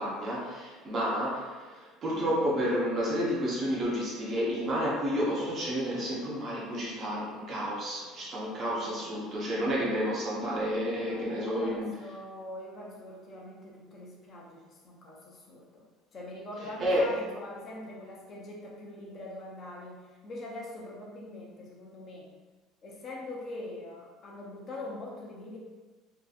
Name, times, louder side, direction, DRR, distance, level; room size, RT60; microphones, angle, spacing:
voice 1, 0.0-11.9 16.6-17.1, equal, 30° right, -5 dB, 0.5 m, -30 dB
voice 2, 11.0-15.8 16.1-22.3 22.8-25.6, left 1 dB, 25° left, -3 dB, 0.5 m, -43 dB
2.6 x 2.5 x 2.3 m, 1.3 s
cardioid pair, 175°, 0 cm